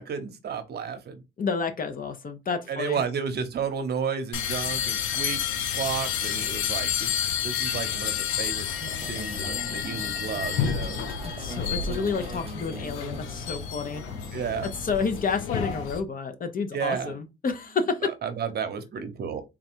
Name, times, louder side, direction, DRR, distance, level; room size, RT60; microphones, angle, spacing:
voice 1, 0.0-1.2 2.7-7.1 7.4-8.7 9.0-11.1 14.3-14.7 16.7-17.2 18.0-19.4, right 6 dB, 55° right, 0.8 m, -32 dB
voice 2, 1.4-3.0 11.2-14.0 14.6-18.1, left 5 dB, 45° left, 0.8 m, -30 dB
sound 1, 4.3-16.0, left 8 dB, 90° left, 0.6 m, -30 dB
sound 2, 8.8-15.9, right 4 dB, 30° right, 0.5 m, -42 dB
3.7 x 2.3 x 4.4 m
cardioid pair, 90°, 20 cm